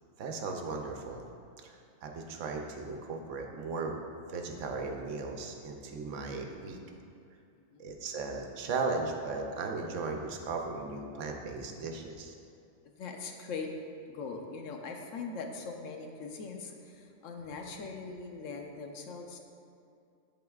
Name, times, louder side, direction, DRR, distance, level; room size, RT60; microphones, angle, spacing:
voice 1, 0.2-1.2 1.6-4.0 4.3-6.8 7.8-12.3, right 4 dB, 70° right, 3 dB, 1.0 m, -36 dB
voice 2, 12.8-13.7 14.1-19.4, left 4 dB, 70° left, 3 dB, 1.0 m, -41 dB
11.5 x 3.9 x 2.3 m, 2.5 s
omnidirectional pair, 1.4 m